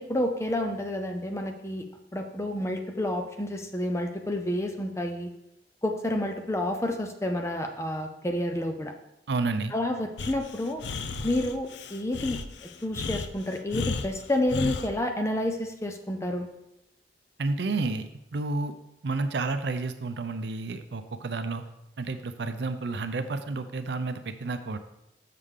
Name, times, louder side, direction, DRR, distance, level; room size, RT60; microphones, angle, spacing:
voice 1, 0.0-1.8 2.1-5.3 5.8-8.9 9.7-10.8 11.2-16.5, left 1 dB, 15° left, 4 dB, 0.6 m, -29 dB
voice 2, 9.3-9.7 17.4-18.7 19.0-21.6 22.0-24.8, right 3 dB, 75° right, 9 dB, 0.6 m, -30 dB
Breathing, 10.2-14.9, left 4 dB, 80° left, 0.5 m, -34 dB
6.6 x 6.5 x 3.7 m, 0.87 s
head